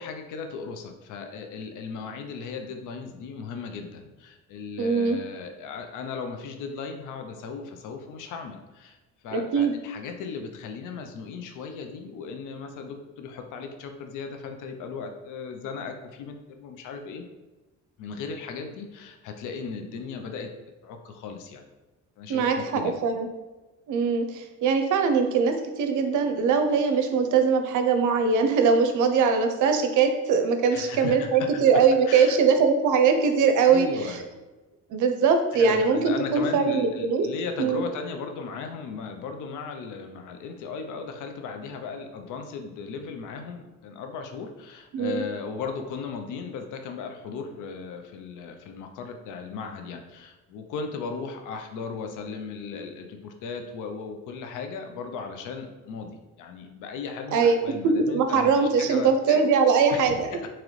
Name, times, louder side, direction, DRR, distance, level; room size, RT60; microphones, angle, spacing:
voice 1, 0.0-9.0 9.2-17.2 18.0-20.5 20.8-21.6 22.2-23.0 30.7-31.7 32.1-32.4 33.7-34.2 35.5-59.4 59.9-60.5, left 5 dB, 90° left, 5 dB, 0.6 m, -37 dB
voice 2, 4.8-5.2 9.3-9.7 22.3-23.3 23.9-33.9 34.9-37.3 37.6-37.8 44.9-45.2 57.3-57.6 57.8-60.5, right 5 dB, 80° right, 6 dB, 0.6 m, -22 dB
3.8 x 3.0 x 3.1 m, 1.2 s
cardioid pair, 90°, 30 cm